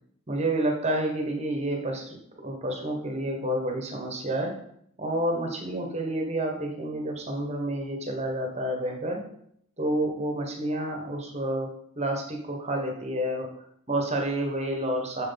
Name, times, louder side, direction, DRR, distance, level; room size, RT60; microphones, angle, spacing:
voice 1, 0.3-4.5 5.0-9.2 9.8-11.7 11.9-15.3, right 1 dB, 30° right, 2 dB, 1.4 m, -29 dB
7.8 x 6.4 x 4.0 m, 0.69 s
head